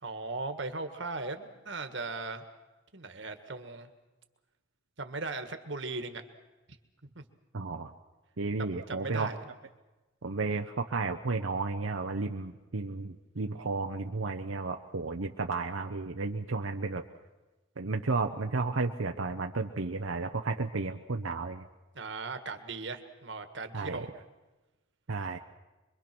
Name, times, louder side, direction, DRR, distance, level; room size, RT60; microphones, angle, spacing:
voice 1, 0.0-2.4 2.9-3.9 5.0-6.2 7.2-7.3 8.6-9.5 21.9-24.1, right 3 dB, 65° right, 7 dB, 1.7 m, -38 dB
voice 2, 7.5-7.9 8.4-9.3 10.2-17.0 17.8-21.7 23.7-24.1 25.1-25.4, right 3 dB, 85° right, 4 dB, 0.8 m, -33 dB
26.0 x 23.0 x 6.1 m, 1.1 s
head